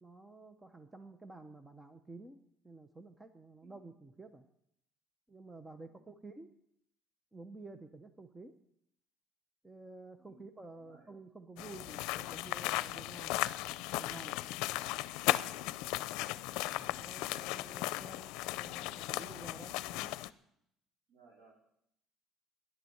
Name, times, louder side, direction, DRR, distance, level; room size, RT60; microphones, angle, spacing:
voice 1, 0.0-2.4 2.6-4.4 5.3-6.5 7.3-8.5 9.6-14.4 15.6-15.7 16.7-20.2, right 3 dB, 10° right, 9 dB, 0.8 m, -51 dB
voice 2, 3.6-4.0 5.9-6.2 10.2-10.5 10.8-11.1 15.6-15.9 21.1-21.5, right 4 dB, 65° right, 1 dB, 4.5 m, -64 dB
sound 1, 11.6-20.3, left 17 dB, 90° left, 0.5 m, -36 dB
13.5 x 11.0 x 7.9 m, 0.75 s
cardioid pair, 145°, 0 cm